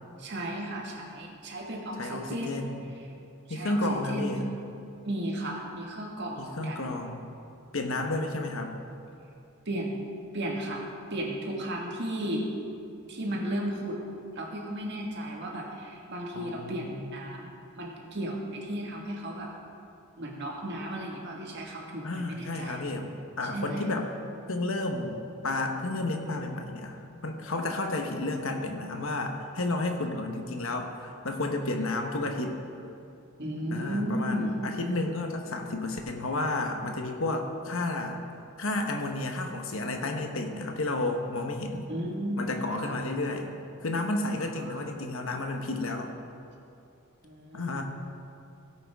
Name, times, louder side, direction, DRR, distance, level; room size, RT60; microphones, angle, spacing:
voice 1, 0.2-2.7 3.5-4.4 5.0-6.8 9.7-10.1 10.3-10.8 11.1-12.5 13.1-14.0 14.4-16.9 17.1-19.5 20.2-22.8 23.5-23.9 33.4-34.6 41.9-43.0 44.6-44.8 47.2-47.8, right 1 dB, 50° right, -1 dB, 1.8 m, -34 dB
voice 2, 2.0-2.8 3.5-4.5 6.4-7.2 7.7-8.8 16.3-17.0 22.0-24.1 24.5-25.2 25.4-32.6 33.7-38.2 38.6-41.9 42.4-43.5 43.8-46.1 47.5-47.8, left 2 dB, 65° left, 4 dB, 1.1 m, -31 dB
16.5 x 8.8 x 3.6 m, 2.6 s
head